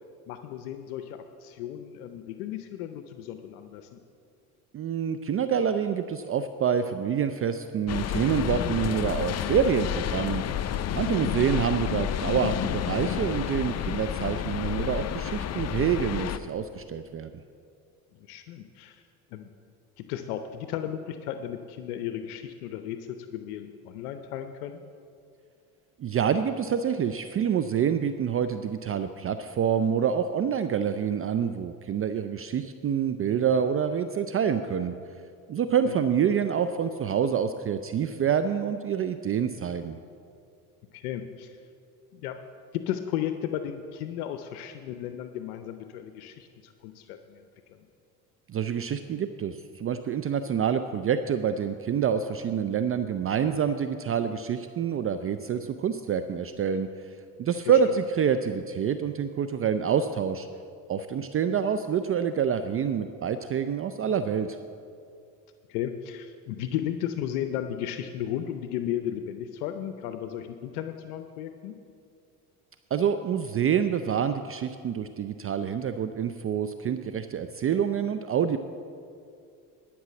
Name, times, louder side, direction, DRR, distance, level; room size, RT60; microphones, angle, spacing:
voice 1, 0.3-4.0 11.1-11.4 18.2-19.0 19.3-19.5 20.0-24.8 35.9-36.0 40.9-41.5 42.1-42.4 42.7-47.4 47.7-47.8 57.7-57.8 65.7-71.8, left 10 dB, 80° left, 8 dB, 0.7 m, -35 dB
voice 2, 4.7-10.4 10.9-17.3 26.0-35.0 35.5-40.0 48.5-60.5 60.9-64.6 72.9-78.6, right 7 dB, 30° right, 10 dB, 0.5 m, -27 dB
sound 1, 7.9-16.4, left 10 dB, 35° left, 0.6 m, -30 dB
12.0 x 6.1 x 7.6 m, 2.4 s
hypercardioid pair, 70°, 44 cm